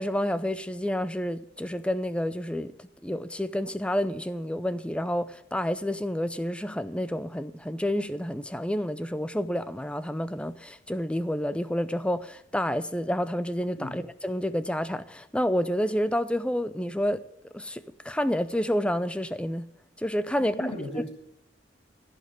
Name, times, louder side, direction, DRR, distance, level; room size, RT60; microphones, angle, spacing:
voice 1, 0.0-2.7 3.0-17.2 17.5-19.6 20.0-20.7, equal, 5° left, 0.5 m, -29 dB
voice 2, 20.4-21.1, left 1 dB, 35° left, 3.0 m, -35 dB
15.0 x 5.4 x 9.1 m
head